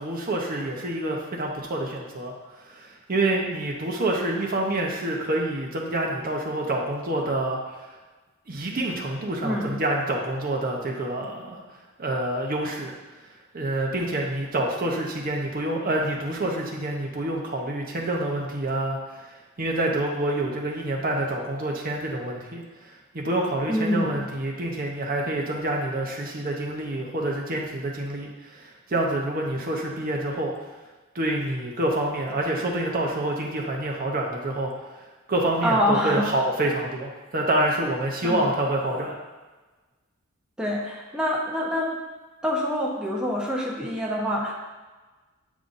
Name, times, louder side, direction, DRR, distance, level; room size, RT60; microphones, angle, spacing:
voice 1, 0.0-7.6 8.5-11.6 12.0-12.9 13.5-30.5 31.1-34.7 35.3-39.1, right 1 dB, 45° right, -1 dB, 0.8 m, -27 dB
voice 2, 9.4-9.8 23.7-24.2 35.6-36.3 38.2-38.4 40.6-41.9 42.4-44.5, equal, 5° right, -3 dB, 0.8 m, -25 dB
8.4 x 5.4 x 2.6 m, 1.2 s
head